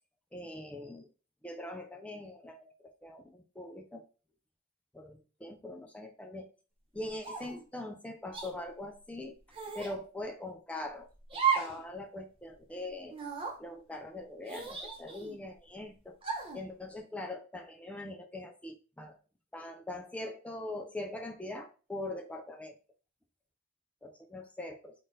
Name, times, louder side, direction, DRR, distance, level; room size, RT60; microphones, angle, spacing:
voice 1, 0.3-1.1 1.4-4.0 4.9-6.5 6.9-9.4 9.7-13.2 13.6-16.2 16.5-19.2 19.5-22.8 24.0-24.9, left 1 dB, 5° left, 3 dB, 0.4 m, -42 dB
sound 1, 7.2-7.6 8.3-8.5 9.5-10.0 11.3-11.8 12.2-12.3 13.1-13.6 14.5-15.4 16.2-16.6, right 7 dB, 25° right, 0.9 m, -34 dB
3.8 x 2.5 x 3.9 m, 0.34 s
head